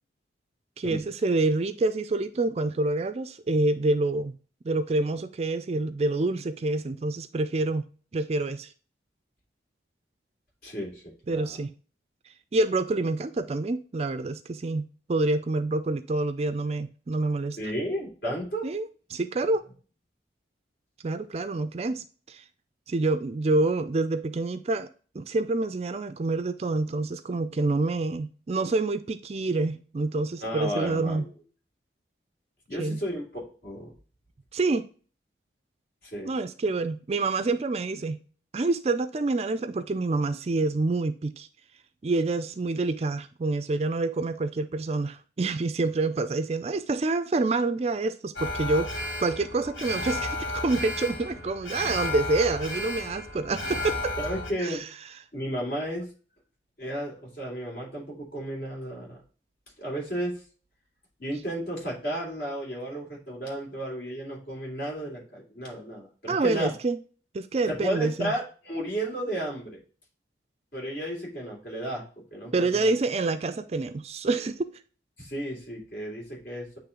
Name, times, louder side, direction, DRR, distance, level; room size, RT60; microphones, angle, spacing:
voice 1, 0.8-4.4 4.6-7.9 8.1-8.7 11.3-11.7 12.5-17.6 18.6-19.6 21.0-22.4 22.9-24.9 25.1-31.2 32.8-33.0 34.5-34.9 36.2-38.2 38.5-41.5 42.0-48.9 49.2-54.1 54.6-54.8 66.3-67.0 67.3-68.3 72.5-74.6, right 3 dB, 35° right, 0.4 m, -27 dB
voice 2, 10.6-11.6 17.6-18.7 30.4-31.3 32.7-33.9 36.0-36.3 54.2-54.8 55.3-56.1 56.8-59.2 59.8-60.4 61.2-66.7 67.7-69.8 70.7-72.0 72.3-72.9 75.2-76.8, right 1 dB, 55° left, 3.0 m, -33 dB
Alarm, 48.4-54.5, left 2 dB, 80° left, 1.6 m, -33 dB
8.4 x 3.2 x 3.7 m
head